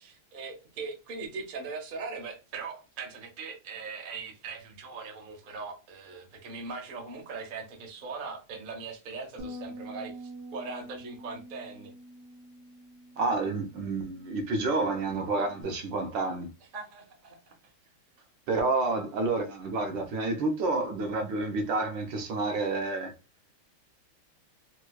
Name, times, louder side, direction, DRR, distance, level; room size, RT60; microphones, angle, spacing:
voice 1, 0.0-11.9 16.7-17.5, right 4 dB, 55° right, 0.6 m, -40 dB
Bass guitar, 9.4-15.6, right 1 dB, 85° right, 1.5 m, -46 dB
voice 2, 13.2-16.5 18.5-23.1, right 3 dB, 70° right, 1.3 m, -29 dB
4.4 x 2.2 x 2.3 m
omnidirectional pair, 2.3 m